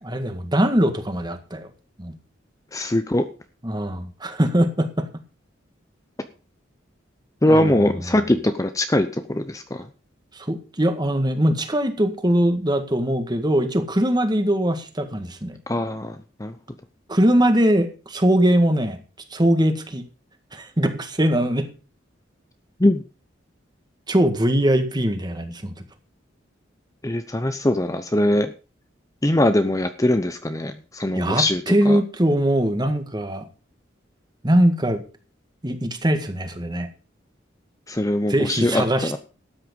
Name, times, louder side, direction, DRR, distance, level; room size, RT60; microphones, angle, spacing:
voice 1, 0.0-1.7 2.0-2.1 3.6-5.1 7.4-8.0 10.3-15.6 17.1-19.0 19.3-20.0 20.5-21.7 24.1-25.7 31.1-33.4 34.4-35.0 35.6-36.9 38.3-39.2, right 1 dB, 25° right, 8 dB, 1.8 m, -21 dB
voice 2, 2.7-3.2 7.4-9.9 15.7-16.5 22.8-23.0 27.0-28.5 29.2-32.0 37.9-39.2, left 1 dB, 20° left, 9 dB, 0.8 m, -22 dB
13.0 x 9.2 x 5.4 m, 0.34 s
head